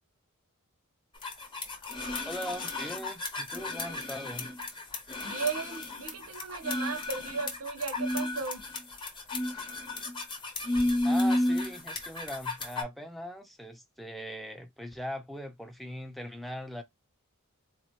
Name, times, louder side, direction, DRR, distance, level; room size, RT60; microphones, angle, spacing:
sound 1, 1.2-12.8, left 1 dB, 20° left, 0.8 m, -32 dB
voice 1, 2.2-4.5 11.0-16.8, equal, ahead, 0.5 m, -40 dB
voice 2, 5.2-8.6, right 5 dB, 75° right, 0.8 m, -35 dB
4.1 x 2.0 x 2.9 m
head